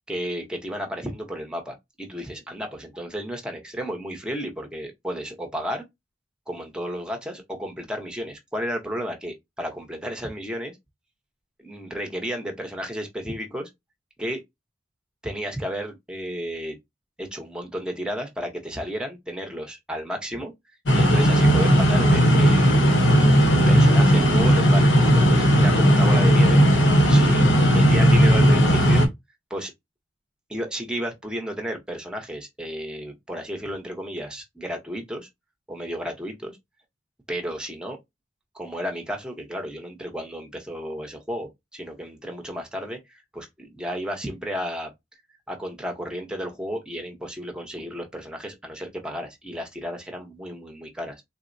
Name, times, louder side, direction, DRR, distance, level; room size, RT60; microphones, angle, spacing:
voice 1, 0.0-5.8 6.5-10.7 11.6-13.7 14.2-14.4 15.2-16.8 17.2-20.5 20.9-22.8 23.4-26.6 27.0-29.1 29.5-29.7 30.5-35.3 35.7-36.6 37.3-38.0 38.5-44.9 45.5-51.2, equal, 5° right, 0.7 m, -33 dB
sound 1, 20.9-29.1, equal, 75° left, 0.8 m, -16 dB
3.8 x 2.0 x 2.5 m
head